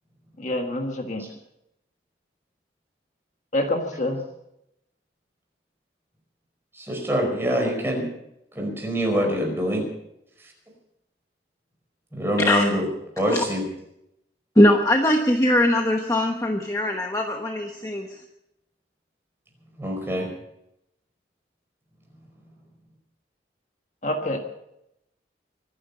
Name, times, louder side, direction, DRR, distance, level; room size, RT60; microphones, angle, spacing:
voice 1, 0.4-1.2 3.5-4.2 24.0-24.4, left 1 dB, 40° left, 3 dB, 1.6 m, -26 dB
voice 2, 6.8-8.1 8.5-9.8 12.1-12.9 13.2-13.6 19.8-20.3, equal, 15° right, 1 dB, 4.9 m, -24 dB
voice 3, 14.6-18.1, left 1 dB, 20° left, 3 dB, 1.1 m, -20 dB
25.0 x 10.0 x 5.6 m, 0.80 s
head